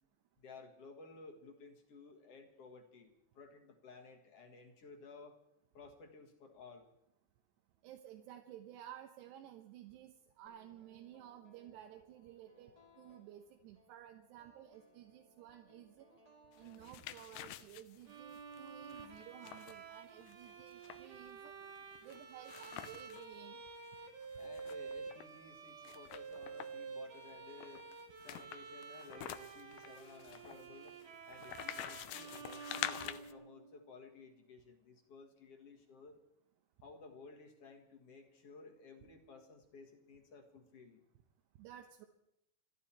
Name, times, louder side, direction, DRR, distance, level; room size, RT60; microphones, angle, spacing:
voice 1, 0.4-5.4 5.7-6.9 24.4-27.9 28.2-31.0 31.2-36.2 36.8-41.1, left 4 dB, 50° left, 4 dB, 2.0 m, -56 dB
voice 2, 7.8-16.2 16.6-23.8 41.6-42.1, right 11 dB, 85° right, 4 dB, 3.0 m, -54 dB
sound 1, 10.5-17.6, equal, 45° right, 0.5 m, -67 dB
sound 2, 16.6-23.3 23.7-23.8 24.0-25.3 25.8-26.9 27.6-33.3, left 13 dB, 85° left, 1.9 m, -47 dB
Bowed string instrument, 18.1-33.9, right 5 dB, 60° right, 2.7 m, -50 dB
28.5 x 11.5 x 4.4 m, 0.81 s
omnidirectional pair, 4.8 m